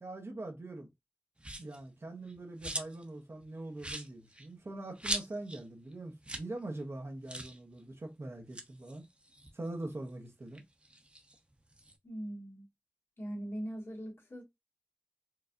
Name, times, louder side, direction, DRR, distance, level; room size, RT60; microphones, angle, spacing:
voice 1, 0.0-0.9 1.6-9.1 9.5-10.6, right 2 dB, 75° right, 0.8 m, -43 dB
sound 1, 1.4-1.8 2.2-3.1 3.4-3.5 3.8-5.6 5.9-6.0 6.2-6.5 6.8-6.9 7.3-7.6 8.3-10.1 10.5-12.0, right 1 dB, 25° right, 0.7 m, -41 dB
voice 2, 12.0-12.7 13.2-14.4, right 1 dB, 75° left, 1.5 m, -41 dB
4.6 x 2.3 x 2.5 m
wide cardioid pair, 55°, 4 cm